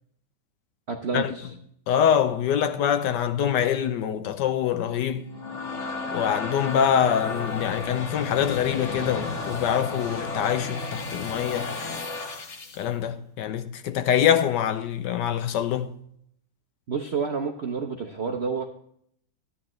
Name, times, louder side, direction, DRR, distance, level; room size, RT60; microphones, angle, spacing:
voice 1, 0.9-1.5 16.9-18.6, right 5 dB, 65° right, 0.6 m, -29 dB
voice 2, 1.9-5.3 6.1-11.8 12.7-16.0, left 9 dB, 75° left, 1.1 m, -24 dB
sound 1, 5.1-12.9, left 4 dB, 45° left, 1.2 m, -33 dB
12.0 x 9.7 x 3.1 m
omnidirectional pair, 2.1 m